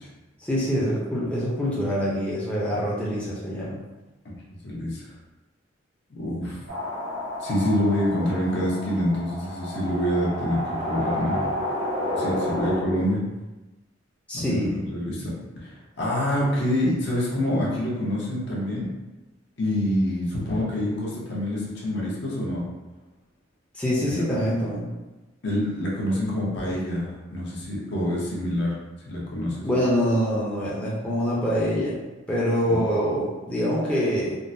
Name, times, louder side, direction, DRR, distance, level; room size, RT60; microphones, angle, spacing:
voice 1, 0.4-3.8 14.3-14.7 23.7-24.9 29.6-32.0 32.3-34.4, equal, 5° left, -8 dB, 0.5 m, -25 dB
voice 2, 4.6-5.1 6.1-6.6 7.4-11.4 12.1-13.2 14.3-15.3 15.6-18.9 19.6-22.6 24.1-24.3 25.4-28.7 29.0-29.7 32.7-32.8, left 1 dB, 60° left, -5 dB, 0.9 m, -26 dB
sound 1, 6.7-12.8, left 1 dB, 80° right, 1.1 m, -30 dB
3.6 x 2.1 x 2.6 m, 1.1 s
head